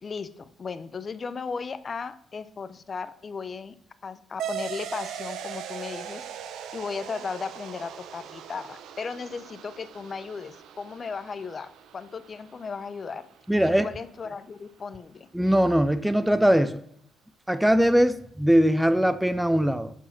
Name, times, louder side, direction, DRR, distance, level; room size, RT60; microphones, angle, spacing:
voice 1, 0.0-3.7 4.0-6.2 6.7-13.2 13.6-15.3, left 5 dB, 40° left, 13 dB, 0.6 m, -36 dB
sound 1, 4.4-13.4, right 9 dB, 80° right, 0.7 m, -40 dB
voice 2, 13.5-13.9 15.3-16.8 17.5-19.9, equal, 5° right, 12 dB, 0.5 m, -21 dB
9.9 x 4.6 x 6.0 m, 0.71 s
cardioid pair, 90°, 0 cm